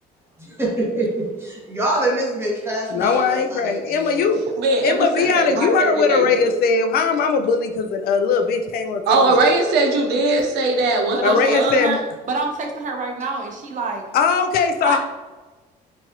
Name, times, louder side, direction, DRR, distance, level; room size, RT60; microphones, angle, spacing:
voice 1, 0.4-4.2, right 1 dB, 15° right, -4 dB, 1.3 m, -25 dB
voice 2, 2.9-4.4 4.8-9.3 11.2-12.0 14.1-15.0, left 5 dB, 65° left, 6 dB, 0.4 m, -19 dB
voice 3, 4.6-6.5 9.1-11.8, right 2 dB, 80° right, 2 dB, 0.7 m, -20 dB
voice 4, 11.1-14.1 14.8-15.0, right 3 dB, 50° right, 2 dB, 0.7 m, -27 dB
4.6 x 2.6 x 2.9 m, 1.2 s
cardioid pair, 110°, 17 cm